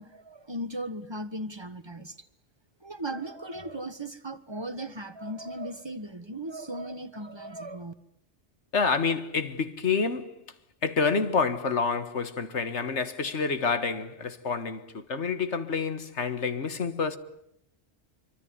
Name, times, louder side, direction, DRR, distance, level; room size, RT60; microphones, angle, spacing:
voice 1, 0.0-2.3 2.8-7.9, right 1 dB, 25° right, 1.4 m, -37 dB
voice 2, 8.7-10.3 10.8-17.2, left 5 dB, 75° left, 1.9 m, -28 dB
26.0 x 24.5 x 9.3 m
omnidirectional pair, 1.2 m